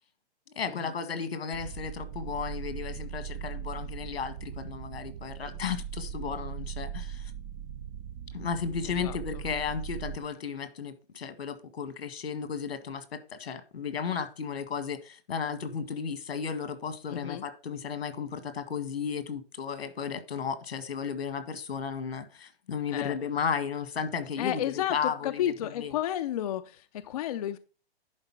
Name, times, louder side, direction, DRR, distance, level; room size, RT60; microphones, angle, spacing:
voice 1, 0.5-7.3 8.3-25.9, left 6 dB, 80° left, 1.8 m, -34 dB
sound 1, 1.5-10.2, right 9 dB, 20° right, 0.4 m, -39 dB
voice 2, 8.8-9.2 17.1-17.4 22.9-23.2 24.4-27.6, left 11 dB, 40° left, 0.5 m, -32 dB
10.5 x 4.1 x 5.7 m
hypercardioid pair, 145°, 31 cm